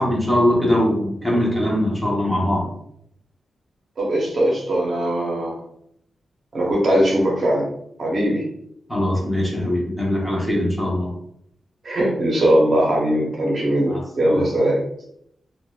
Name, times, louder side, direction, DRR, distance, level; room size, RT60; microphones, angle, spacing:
voice 1, 0.0-2.7 8.9-11.1 13.9-14.0 14.3-14.4, left 1 dB, 5° left, -4 dB, 0.9 m, -21 dB
voice 2, 4.0-5.6 6.5-7.7 8.0-8.5 11.8-14.8, right 1 dB, 50° right, -2 dB, 0.8 m, -20 dB
3.8 x 2.4 x 2.3 m, 0.73 s
wide cardioid pair, 145°, 0 cm